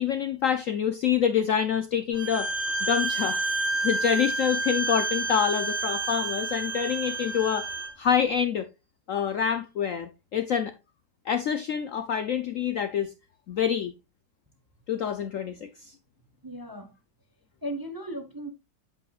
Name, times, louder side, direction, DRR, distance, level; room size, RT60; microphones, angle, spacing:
voice 1, 0.0-2.5 2.8-3.5 3.8-7.7 8.0-8.7 9.1-10.7 11.3-13.1 13.5-13.9 14.9-15.9, left 8 dB, 65° left, 0.8 m, -26 dB
Bowed string instrument, 2.1-7.9, right 2 dB, ahead, 4.7 m, -29 dB
voice 2, 16.4-16.9 17.6-18.5, right 1 dB, 15° right, 0.8 m, -36 dB
8.5 x 8.2 x 2.4 m
omnidirectional pair, 1.9 m